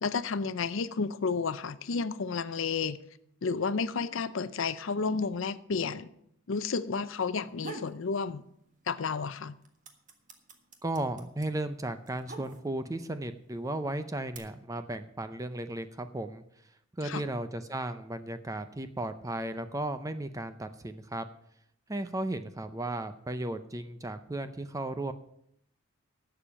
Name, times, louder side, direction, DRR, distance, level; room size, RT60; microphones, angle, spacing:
voice 1, 0.0-3.0 3.4-6.1 6.5-8.4 8.9-9.6 17.0-17.2, left 5 dB, 65° left, 0.6 m, -31 dB
sound 1, 7.3-8.0 8.4-9.1 9.4-13.0 13.7-14.4, right 3 dB, 35° right, 1.4 m, -45 dB
voice 2, 10.8-16.4 16.9-21.3 21.9-25.1, right 1 dB, 15° right, 0.5 m, -35 dB
11.5 x 7.0 x 7.3 m
head